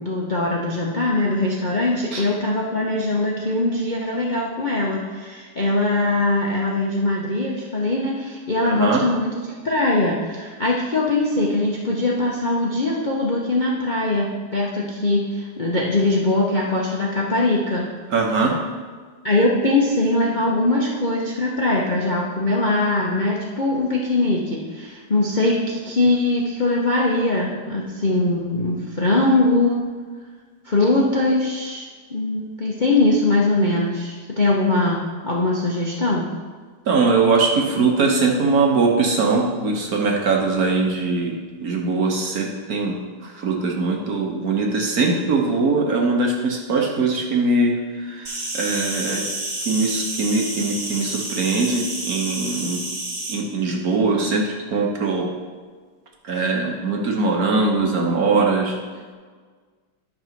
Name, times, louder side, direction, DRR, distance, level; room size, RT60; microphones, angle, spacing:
voice 1, 0.0-17.9 19.2-29.8 30.6-35.0 35.2-36.3, left 2 dB, 90° left, -4 dB, 0.4 m, -21 dB
voice 2, 8.6-9.0 18.1-18.6 36.9-41.4 41.6-43.0 43.2-49.3 49.7-52.8 53.3-55.3 56.2-58.8, right 3 dB, 50° right, 0 dB, 1.2 m, -21 dB
Insect, 48.2-53.3, right 1 dB, 25° right, 0.9 m, -29 dB
11.0 x 4.0 x 5.8 m, 1.5 s
omnidirectional pair, 2.4 m